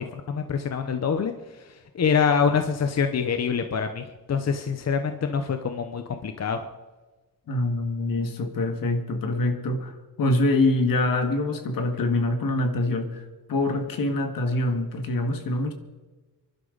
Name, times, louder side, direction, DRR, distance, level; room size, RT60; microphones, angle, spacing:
voice 1, 0.0-6.7, left 6 dB, 45° left, 7 dB, 0.9 m, -26 dB
voice 2, 7.5-15.7, left 2 dB, 70° left, 6 dB, 1.9 m, -25 dB
25.0 x 11.5 x 4.0 m, 1.3 s
cardioid pair, 95°, 35 cm